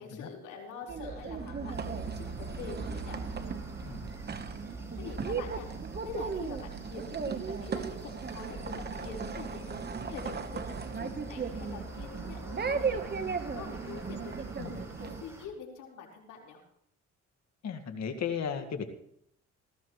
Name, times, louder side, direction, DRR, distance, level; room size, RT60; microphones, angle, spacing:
voice 1, 0.0-3.2 4.4-4.6 5.0-5.7 5.9-9.6 10.1-13.0 13.4-16.6, left 5 dB, 85° left, -1 dB, 4.5 m, -45 dB
sound 1, 0.9-15.2, right 5 dB, 35° right, 1.2 m, -36 dB
sound 2, 1.7-15.5, equal, 10° right, 5.3 m, -52 dB
sound 3, 8.2-15.4, left 8 dB, 45° left, 3.7 m, -54 dB
voice 2, 17.6-18.8, left 7 dB, 65° left, 7 dB, 2.0 m, -35 dB
19.0 x 15.0 x 3.2 m, 0.70 s
cardioid pair, 90°, 30 cm